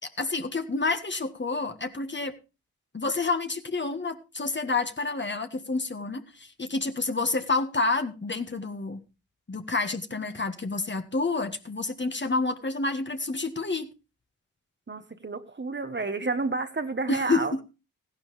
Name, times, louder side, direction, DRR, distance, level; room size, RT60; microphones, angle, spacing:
voice 1, 0.0-2.4 2.9-9.0 9.5-13.9 17.1-17.6, left 3 dB, 30° left, 8 dB, 1.6 m, -29 dB
voice 2, 14.9-17.6, right 3 dB, 30° right, 9 dB, 1.3 m, -30 dB
15.0 x 11.5 x 3.3 m, 0.30 s
cardioid pair, 50°, 35 cm